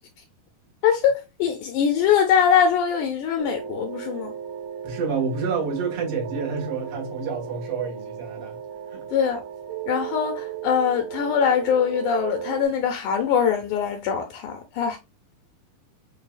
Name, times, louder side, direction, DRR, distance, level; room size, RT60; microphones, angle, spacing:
voice 1, 0.8-4.3 9.1-9.4 9.9-15.0, left 7 dB, 80° left, 2.0 m, -22 dB
sound 1, 3.4-12.7, right 9 dB, 80° right, 2.1 m, -35 dB
voice 2, 4.8-8.5 8.9-9.0, right 5 dB, 50° right, 1.9 m, -28 dB
6.2 x 2.7 x 2.2 m
omnidirectional pair, 3.9 m